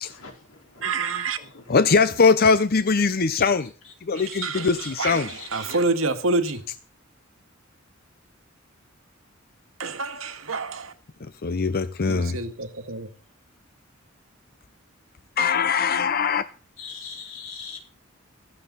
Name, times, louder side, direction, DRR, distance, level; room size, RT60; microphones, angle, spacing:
voice 1, 0.0-0.9 1.4-2.0 3.3-3.4 3.8-3.9 4.3-4.5 4.8-4.9 5.3-5.8 16.8-17.8, left 5 dB, 85° left, 4.3 m, -41 dB
voice 2, 0.8-1.4 4.1-6.7 9.8-10.9 12.1-13.1, right 3 dB, 80° right, 1.8 m, -28 dB
voice 3, 1.7-3.7 4.0-5.3 11.4-12.4 15.4-16.4, left 5 dB, 50° left, 0.7 m, -21 dB
15.0 x 14.0 x 4.1 m
head